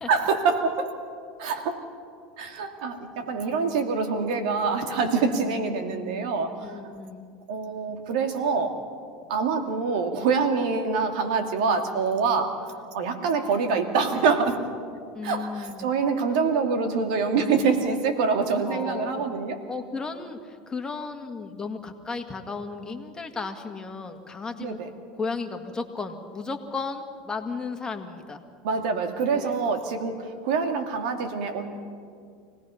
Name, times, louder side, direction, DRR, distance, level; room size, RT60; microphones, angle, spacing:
voice 1, 0.1-0.9 1.4-1.8 2.4-6.7 7.5-8.8 9.3-12.5 12.9-14.6 15.2-19.6 24.6-24.9 28.6-31.8, right 5 dB, 75° right, 6 dB, 2.3 m, -25 dB
voice 2, 5.1-5.5 6.6-7.3 15.2-15.9 18.7-19.3 19.7-24.8 25.1-28.4 29.3-29.6, left 4 dB, 15° left, 5 dB, 1.9 m, -34 dB
25.5 x 18.0 x 5.7 m, 2.2 s
hypercardioid pair, 100°, 4 cm